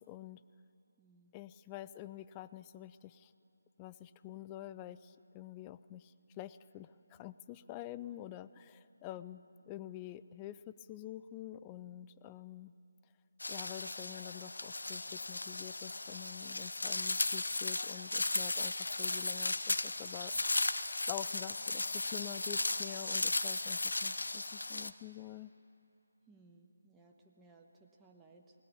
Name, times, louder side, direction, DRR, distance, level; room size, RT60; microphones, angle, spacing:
voice 1, 0.1-0.4 1.3-3.3 3.8-12.7 13.5-20.3 21.1-25.5, left 13 dB, 15° left, 14 dB, 0.4 m, -47 dB
voice 2, 1.0-1.3 9.2-9.3 26.3-28.6, right 3 dB, 10° right, -1 dB, 1.2 m, -62 dB
sound 1, 13.4-24.9, left 2 dB, 75° left, 0.8 m, -36 dB
20.0 x 17.5 x 8.6 m, 2.8 s
figure-of-eight pair, 155°, 0 cm